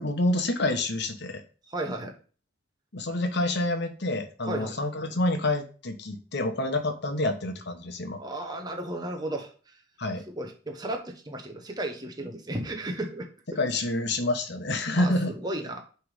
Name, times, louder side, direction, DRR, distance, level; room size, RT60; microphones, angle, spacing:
voice 1, 0.0-1.4 2.9-8.2 10.0-10.2 13.5-15.3, left 2 dB, 60° left, 7 dB, 1.2 m, -28 dB
voice 2, 1.7-2.2 4.5-4.8 8.2-9.7 10.3-13.3 15.0-15.8, right 1 dB, 20° right, 3 dB, 1.0 m, -34 dB
9.6 x 3.5 x 4.9 m, 0.38 s
head